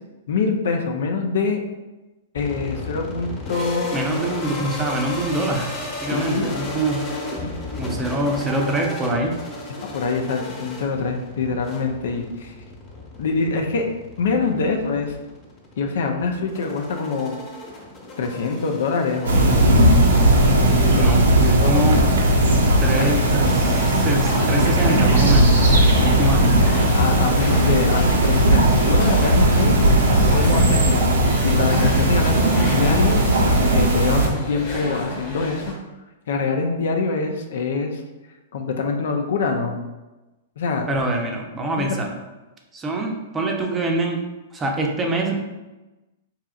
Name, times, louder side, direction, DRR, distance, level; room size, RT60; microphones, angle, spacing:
voice 1, 0.3-1.6 2.3-4.0 6.1-6.5 7.4-7.5 9.8-12.5 13.2-13.9 14.2-15.2 15.8-17.4 18.2-19.5 20.6-21.1 21.6-21.8 23.0-23.2 26.9-29.7 30.3-31.1 31.4-33.2 33.6-35.7 36.3-38.0 38.5-39.8 40.6-40.9 41.8-41.9, left 4 dB, 75° left, 3 dB, 0.5 m, -24 dB
sound 1, 2.4-21.6, left 2 dB, 30° left, 1.2 m, -34 dB
voice 2, 3.9-7.0 7.8-9.4 20.9-22.1 22.8-25.6 25.9-26.5 40.9-42.1 42.7-45.4, right 1 dB, 20° right, 1 dB, 0.6 m, -24 dB
sound 2, 19.2-34.3, right 1 dB, 85° right, 0.8 m, -17 dB
sound 3, 22.9-35.7, left 2 dB, 50° left, 1.1 m, -32 dB
4.8 x 2.8 x 2.4 m, 1.1 s
hypercardioid pair, 130°, 0 cm